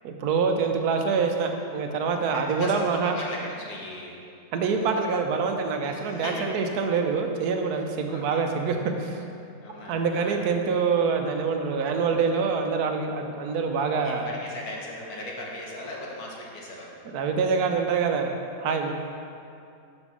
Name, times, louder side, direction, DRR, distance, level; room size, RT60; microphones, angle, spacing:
voice 1, 0.0-3.1 4.5-9.2 9.9-14.4 17.0-18.3 18.6-18.9, right 5 dB, 85° right, 4 dB, 1.2 m, -25 dB
voice 2, 2.3-4.2 5.9-6.7 8.1-8.5 9.6-10.4 12.0-12.2 14.0-16.9, left 1 dB, 75° left, -2 dB, 1.7 m, -38 dB
6.0 x 5.4 x 6.0 m, 2.5 s
omnidirectional pair, 1.6 m